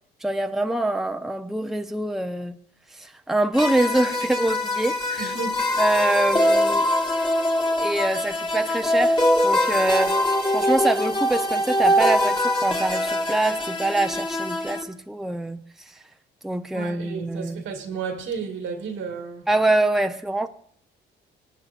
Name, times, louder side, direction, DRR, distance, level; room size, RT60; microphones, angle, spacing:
voice 1, 0.2-2.6 2.9-5.3 5.8-6.9 7.8-10.2 10.5-15.6 16.4-17.6 19.5-20.5, right 1 dB, ahead, 0.7 m, -25 dB
sound 1, 3.5-14.8, left 1 dB, 25° left, 1.9 m, -23 dB
voice 2, 5.2-5.6 16.7-19.5, right 5 dB, 75° right, 1.9 m, -32 dB
25.5 x 9.3 x 2.5 m
cardioid pair, 90°, 20 cm